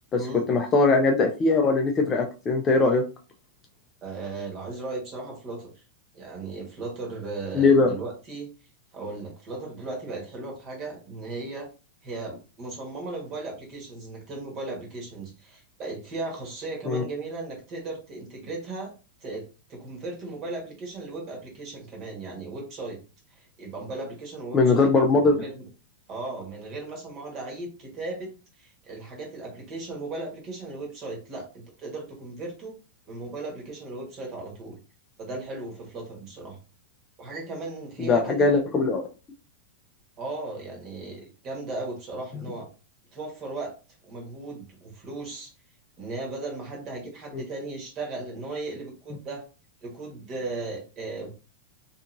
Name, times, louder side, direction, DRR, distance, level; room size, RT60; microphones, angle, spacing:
voice 1, 0.1-3.0 7.5-7.9 16.9-17.0 24.5-25.4 38.0-39.0 42.3-42.4 47.3-47.4, left 3 dB, 20° left, 2 dB, 0.3 m, -21 dB
voice 2, 4.0-5.8 6.1-8.5 8.9-11.7 12.0-18.9 19.2-19.4 19.7-23.0 23.4-25.6 26.1-28.3 28.6-32.8 33.1-34.8 35.2-36.6 37.2-38.5 40.2-42.7 43.1-43.7 44.0-45.5 46.0-49.4 49.8-51.3, right 3 dB, 30° right, 0 dB, 1.2 m, -36 dB
2.8 x 2.5 x 2.5 m, 0.34 s
supercardioid pair, 155°, 0 cm